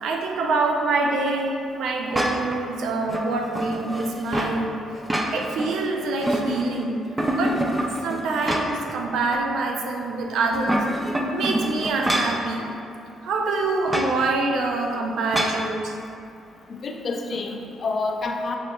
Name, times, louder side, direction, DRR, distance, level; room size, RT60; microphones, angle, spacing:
voice 1, 0.0-4.8 5.3-7.0 7.3-7.6 8.0-10.9 11.3-12.7 13.2-16.0, right 3 dB, 80° right, 2 dB, 0.4 m, -25 dB
sound 1, 2.1-2.6 3.1-4.6 4.9-5.7 6.0-6.8 7.2-8.9 9.3-9.4 10.4-12.4 13.9-14.1 15.3-15.6, right 1 dB, 10° right, 0.4 m, -26 dB
voice 2, 16.7-18.6, left 3 dB, 50° left, 2 dB, 0.4 m, -28 dB
6.3 x 3.0 x 2.3 m, 2.6 s
cardioid pair, 90°, 0 cm